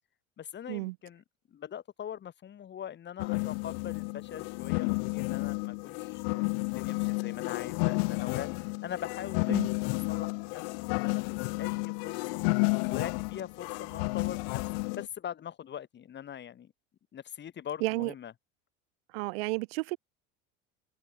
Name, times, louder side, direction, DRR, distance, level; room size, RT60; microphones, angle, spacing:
voice 1, 0.4-6.5 6.7-8.5 8.8-12.3 12.9-14.6 14.9-16.7 17.1-18.3, left 9 dB, 40° left, 3.7 m, -42 dB
sound 1, 3.2-15.1, left 37 dB, 75° left, 0.5 m, -31 dB
voice 2, 17.8-18.1 19.1-20.0, right 23 dB, 85° right, 0.8 m, -32 dB
open air
supercardioid pair, 110°, 29 cm